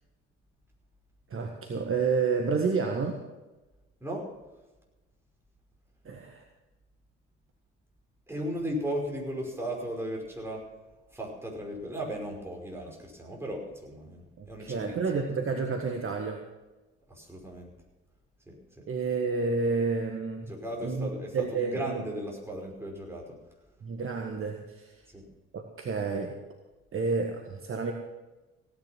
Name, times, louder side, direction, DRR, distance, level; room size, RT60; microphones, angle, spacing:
voice 1, 1.3-3.2 6.0-6.4 14.4-16.4 18.9-20.5 20.8-22.0 23.8-24.9 25.5-26.3 26.9-27.9, right 4 dB, 40° right, 3 dB, 1.6 m, -30 dB
voice 2, 4.0-4.3 8.3-10.7 11.1-15.0 17.1-17.7 18.5-18.8 20.5-23.4 25.1-25.2, equal, 5° right, -1 dB, 5.4 m, -36 dB
16.5 x 10.0 x 6.0 m, 1.1 s
figure-of-eight pair, 50°, 34 cm